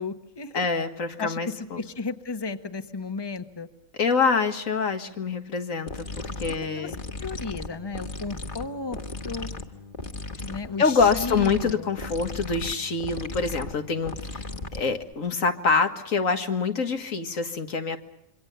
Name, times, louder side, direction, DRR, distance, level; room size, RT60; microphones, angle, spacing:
voice 1, 0.0-0.7 1.2-3.7 6.7-9.0 9.3-9.5 10.4-11.9, left 4 dB, 20° left, 9 dB, 1.2 m, -34 dB
voice 2, 0.5-1.8 4.0-7.0 10.8-14.4 14.7-18.0, left 5 dB, 85° left, 6 dB, 2.1 m, -25 dB
sound 1, 5.9-15.1, left 3 dB, 40° left, 1.7 m, -37 dB
27.5 x 24.0 x 6.9 m, 0.83 s
omnidirectional pair, 1.3 m